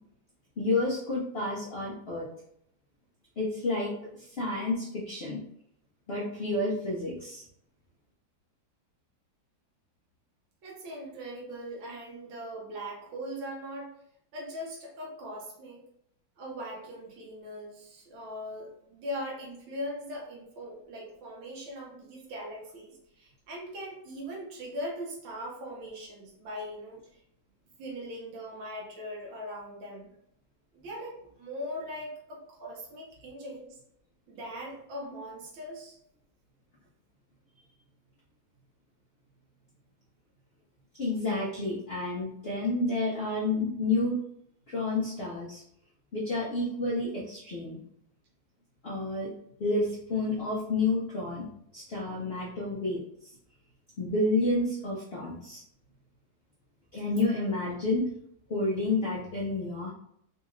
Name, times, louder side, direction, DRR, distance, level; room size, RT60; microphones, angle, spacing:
voice 1, 0.6-2.3 3.4-5.4 6.1-7.4 41.0-44.2 44.7-45.6 46.1-47.8 48.8-49.3 49.6-51.5 51.7-53.0 54.0-55.6 56.9-58.0 58.5-59.9, left 2 dB, 75° left, -5 dB, 0.5 m, -30 dB
voice 2, 10.6-13.9 14.3-15.8 16.4-27.2 27.8-30.1 30.7-33.8 34.3-36.0, equal, 90° right, -3 dB, 1.7 m, -40 dB
4.0 x 2.4 x 3.0 m, 0.71 s
omnidirectional pair, 2.1 m